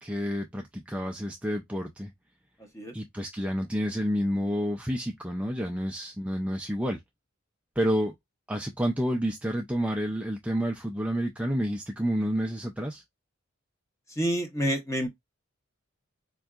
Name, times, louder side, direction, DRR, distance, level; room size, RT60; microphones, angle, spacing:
voice 1, 0.0-2.1 2.9-7.0 7.8-8.1 8.5-13.0, equal, 5° right, 0.3 m, -29 dB
voice 2, 14.1-15.1, equal, 15° left, 0.9 m, -28 dB
4.5 x 2.6 x 2.3 m
head